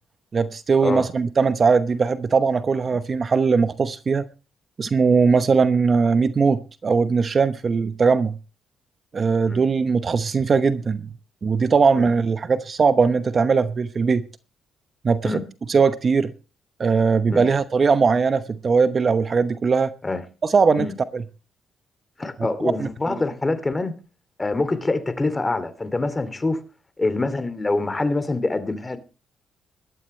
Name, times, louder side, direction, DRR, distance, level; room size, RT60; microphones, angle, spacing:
voice 1, 0.3-4.3 4.8-8.4 9.1-11.1 11.4-14.2 15.0-15.4 15.7-16.3 16.8-19.9 20.4-20.9 21.1-21.2 22.8-22.9, right 5 dB, 40° right, 0.9 m, -20 dB
voice 2, 22.2-23.9 24.4-26.6 27.0-29.0, left 2 dB, 20° left, 2.5 m, -25 dB
19.0 x 12.0 x 3.2 m
cardioid pair, 90°, 0 cm